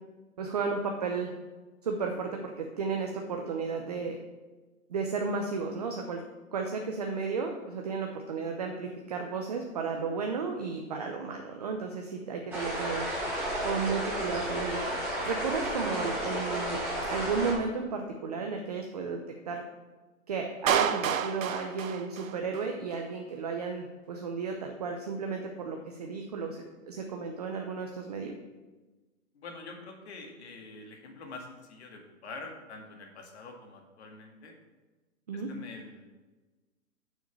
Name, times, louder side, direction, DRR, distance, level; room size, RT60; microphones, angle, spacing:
voice 1, 0.4-1.3 1.8-4.2 4.9-6.2 6.5-13.1 13.6-14.8 15.2-16.8 17.1-19.2 19.5-19.6 20.3-28.3 35.3-35.5, right 5 dB, 30° right, 3 dB, 0.6 m, -33 dB
sound 1, 12.5-17.5, right 1 dB, 5° right, 1.7 m, -32 dB
Clapping, 20.7-22.7, right 8 dB, 70° right, 0.8 m, -29 dB
voice 2, 29.3-34.5 35.3-36.0, left 3 dB, 50° left, 2 dB, 2.0 m, -46 dB
6.5 x 6.0 x 7.2 m, 1.2 s
hypercardioid pair, 165°, 42 cm